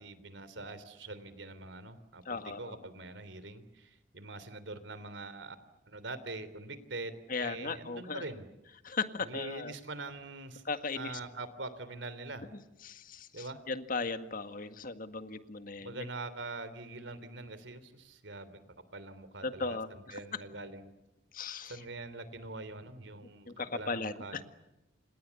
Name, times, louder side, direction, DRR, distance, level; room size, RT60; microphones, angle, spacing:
voice 1, 0.0-5.6 5.8-8.5 9.2-10.6 10.9-12.5 13.3-13.6 15.8-18.6 18.9-20.9 21.7-24.4, right 2 dB, 75° right, 14 dB, 3.3 m, -44 dB
voice 2, 2.3-2.8 7.3-8.2 8.8-9.7 10.7-11.2 12.8-16.0 19.4-20.2 21.3-21.8 23.5-24.4, left 4 dB, 50° left, 9 dB, 1.8 m, -37 dB
29.5 x 27.0 x 7.1 m, 0.95 s
head